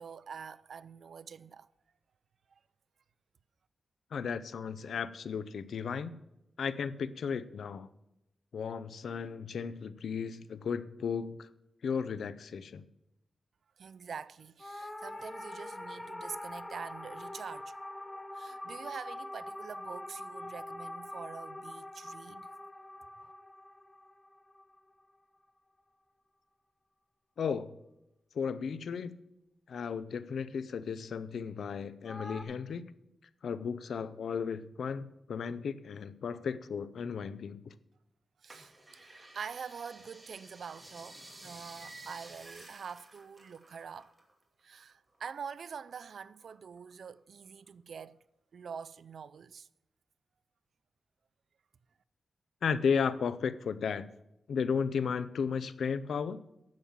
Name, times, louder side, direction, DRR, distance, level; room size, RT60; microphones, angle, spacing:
voice 1, 0.0-1.7 2.5-2.6 13.8-17.8 18.3-22.5 23.2-23.3 38.4-38.7 39.0-44.1 44.6-48.2 48.5-49.7, right 6 dB, 70° right, 0.4 m, -45 dB
voice 2, 4.1-6.2 6.6-7.9 8.5-11.5 11.8-12.8 27.4-27.8 28.3-29.2 29.7-32.9 33.4-37.8 52.6-54.1 54.5-56.4, left 6 dB, 85° left, 0.6 m, -34 dB
sound 1, 14.6-25.1 32.0-32.4, left 1 dB, 15° left, 0.9 m, -44 dB
sound 2, 38.5-44.3 44.6-45.9 46.4-47.2 47.7-47.8, right 2 dB, 25° right, 2.4 m, -53 dB
10.5 x 7.2 x 7.4 m
wide cardioid pair, 115°, 0 cm